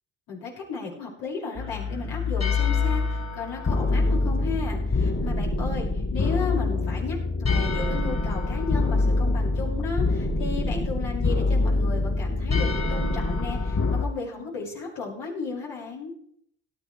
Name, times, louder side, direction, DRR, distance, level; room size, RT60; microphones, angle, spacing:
voice 1, 0.3-16.1, left 4 dB, 75° left, -4 dB, 6.5 m, -34 dB
sound 1, 1.6-14.0, left 3 dB, 40° left, 6.1 m, -25 dB
18.0 x 12.0 x 3.4 m, 0.71 s
hypercardioid pair, 50°, 43 cm